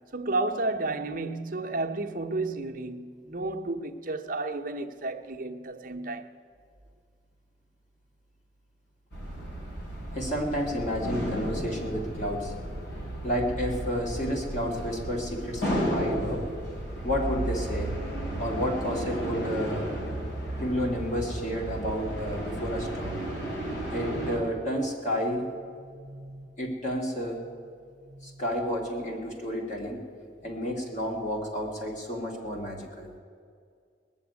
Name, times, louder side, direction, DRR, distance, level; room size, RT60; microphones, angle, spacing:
voice 1, 0.1-6.3, right 2 dB, 50° right, 0.9 m, -32 dB
sound 1, 9.1-24.4, right 1 dB, 70° left, 4.8 m, -33 dB
voice 2, 10.1-12.5 13.2-16.5 17.0-17.9 18.4-19.9 20.6-23.2 23.9-27.5 28.0-30.0 30.4-33.1, equal, 45° left, 2.4 m, -31 dB
20.0 x 7.1 x 9.4 m
head